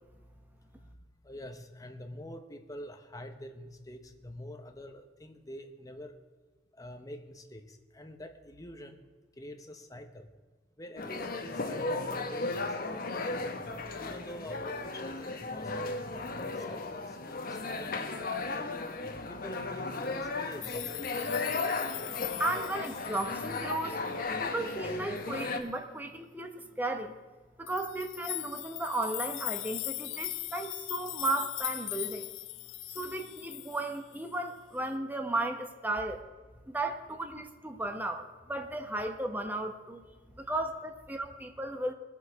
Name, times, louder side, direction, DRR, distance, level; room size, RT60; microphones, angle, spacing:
voice 1, 1.2-6.1 6.8-9.0 9.4-10.3 10.8-13.5 14.0-21.5, left 1 dB, 20° left, 6 dB, 1.0 m, -46 dB
sound 1, 11.0-25.6, left 3 dB, 50° left, 1.1 m, -35 dB
sound 2, 20.6-24.1 24.7-24.8 25.2-25.3 27.7-34.3, left 22 dB, 75° left, 0.3 m, -40 dB
voice 2, 22.4-24.0 24.4-27.2 27.6-32.3 32.9-36.3 36.7-40.0 40.4-41.9, right 2 dB, 10° right, 5 dB, 1.0 m, -35 dB
21.0 x 7.4 x 4.8 m, 1.4 s
head